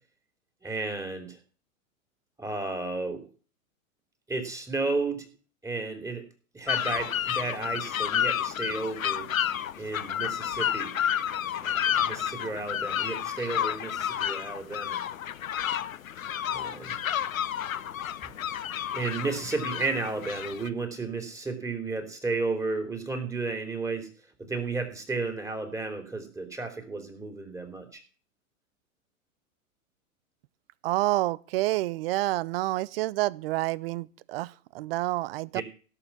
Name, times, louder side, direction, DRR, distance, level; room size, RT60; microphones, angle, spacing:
voice 1, 0.6-1.4 2.4-3.3 4.3-5.3 5.6-6.2 6.5-9.3 9.8-11.0 11.6-15.0 16.5-17.0 18.9-24.1 24.4-28.0 35.5-35.6, right 3 dB, 5° right, 3.3 m, -33 dB
sound 1, 6.7-20.7, left 10 dB, 70° left, 1.0 m, -30 dB
voice 2, 30.8-35.6, right 17 dB, 45° right, 0.7 m, -28 dB
17.0 x 7.5 x 6.0 m
figure-of-eight pair, 100°, 42 cm